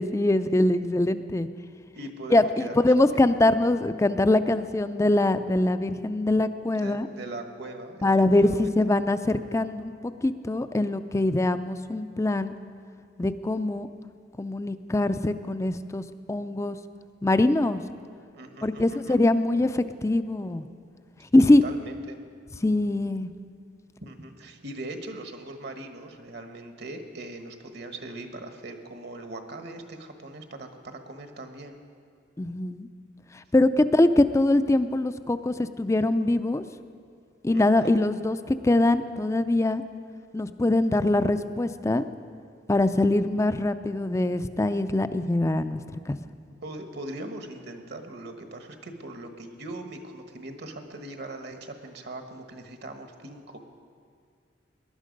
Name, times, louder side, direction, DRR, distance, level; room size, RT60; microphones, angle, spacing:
voice 1, 0.0-1.5 2.3-7.1 8.0-12.5 13.2-13.9 14.4-16.0 16.3-16.8 17.2-17.8 18.6-20.7 21.3-21.6 22.6-23.3 32.4-32.9 33.5-36.6 37.4-39.8 40.3-42.1 42.7-46.2, left 2 dB, 15° left, 11 dB, 0.4 m, -23 dB
voice 2, 1.9-3.2 6.7-8.1 8.3-8.6 18.3-19.2 21.4-22.2 24.0-31.8 37.5-37.9 46.6-53.7, right 2 dB, 60° right, 6 dB, 1.3 m, -40 dB
18.5 x 11.5 x 5.2 m, 2.2 s
head